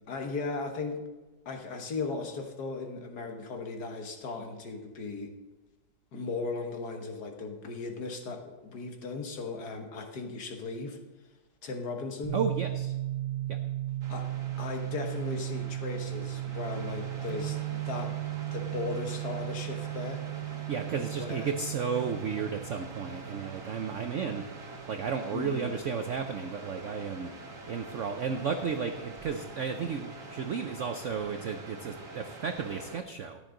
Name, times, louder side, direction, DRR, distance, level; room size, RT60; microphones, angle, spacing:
voice 1, 0.1-1.0 1.4-5.3 6.1-11.0 11.6-12.4 14.1-20.2 21.2-21.5 25.3-25.7, left 4 dB, 55° left, 4 dB, 1.7 m, -37 dB
sound 1, 12.2-25.9, right 15 dB, 65° right, 2.0 m, -36 dB
voice 2, 12.3-12.9 13.5-13.6 20.7-24.4 24.9-27.3 27.7-33.4, right 6 dB, 85° right, 7 dB, 0.6 m, -33 dB
sound 2, 14.0-33.0, right 2 dB, 45° right, 1.7 m, -46 dB
14.0 x 10.5 x 3.8 m, 1.2 s
omnidirectional pair, 2.1 m